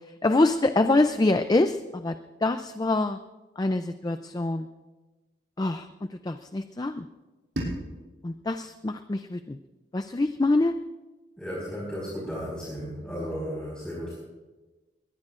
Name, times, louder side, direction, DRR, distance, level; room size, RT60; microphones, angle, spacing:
voice 1, 0.2-3.2 3.6-4.7 5.6-7.1 8.2-9.6 9.9-10.7, left 2 dB, 20° left, 9 dB, 0.4 m, -25 dB
sound 1, 7.5-10.5, right 1 dB, 90° right, 6.2 m, -39 dB
voice 2, 11.4-14.1, equal, 5° left, -7 dB, 4.7 m, -34 dB
21.5 x 20.5 x 2.5 m, 1.2 s
head